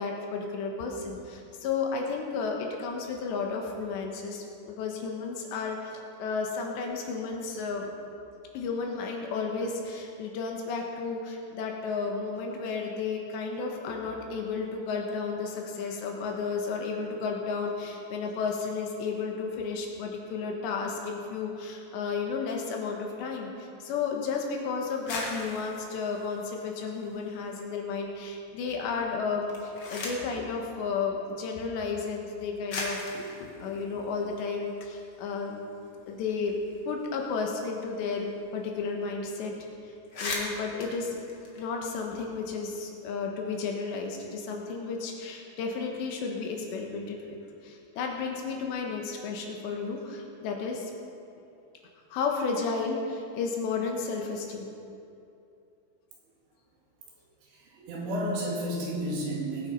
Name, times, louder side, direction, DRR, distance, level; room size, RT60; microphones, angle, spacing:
voice 1, 0.0-7.9 8.5-35.6 36.1-36.6 36.9-39.5 39.8-39.9 40.2-41.2 41.6-47.2 47.6-50.9 52.1-54.7, left 4 dB, 75° left, 1 dB, 3.4 m, -33 dB
sound 1, 24.9-27.5 27.8-28.5 29.3-30.4 31.4-31.5 32.3-32.4 32.7-35.0 35.4-35.5 35.7-38.3 38.6-38.7 39.0-39.3 39.6-39.7 39.9-42.2, left 2 dB, 55° left, 1.5 m, -39 dB
voice 2, 57.4-59.7, right 1 dB, 70° right, -3 dB, 4.4 m, -32 dB
20.5 x 8.3 x 5.5 m, 2.7 s
omnidirectional pair, 5.4 m